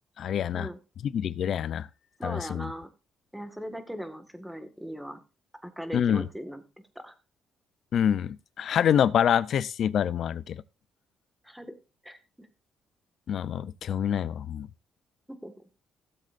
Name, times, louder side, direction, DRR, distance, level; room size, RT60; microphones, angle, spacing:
voice 1, 0.2-0.7 1.1-1.9 2.2-2.7 5.9-6.3 7.9-10.6 13.3-14.7, left 9 dB, 65° left, 0.5 m, -26 dB
voice 2, 2.2-2.9 3.3-5.2 5.6-6.6 7.0-7.1 11.4-11.7 12.0-12.5 15.3-15.5, equal, ahead, 1.7 m, -39 dB
16.5 x 7.6 x 2.6 m
cardioid pair, 90°, 0 cm